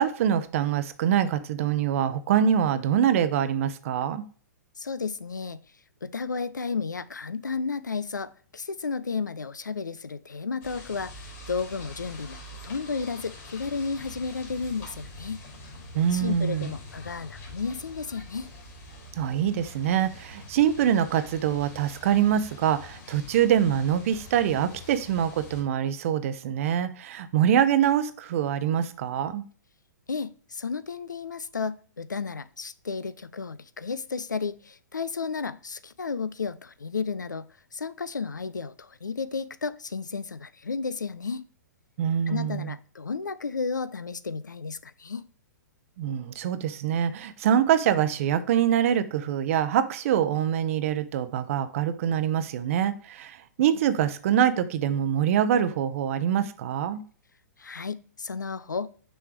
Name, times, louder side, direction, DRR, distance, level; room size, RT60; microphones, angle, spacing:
voice 1, 0.0-4.2 15.9-16.7 19.1-29.4 42.0-42.7 46.0-57.0, right 9 dB, 50° right, 0.7 m, -24 dB
voice 2, 4.8-5.6 6.0-12.4 12.6-15.4 16.1-18.5 30.1-41.5 42.3-45.3 57.6-58.9, left 5 dB, 85° left, 0.5 m, -33 dB
sound 1, 10.6-25.6, left 2 dB, 35° left, 2.6 m, -45 dB
6.2 x 3.4 x 4.5 m
figure-of-eight pair, 115°, 10 cm